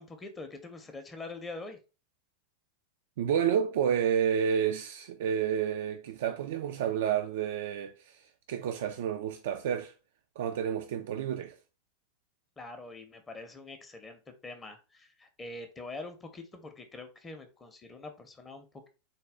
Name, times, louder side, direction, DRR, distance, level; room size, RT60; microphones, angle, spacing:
voice 1, 0.0-1.8 12.6-18.9, left 2 dB, 15° left, 0.7 m, -44 dB
voice 2, 3.2-9.9 10.4-11.6, right 8 dB, 55° right, 0.3 m, -30 dB
4.0 x 2.3 x 3.4 m
figure-of-eight pair, 90°, 0 cm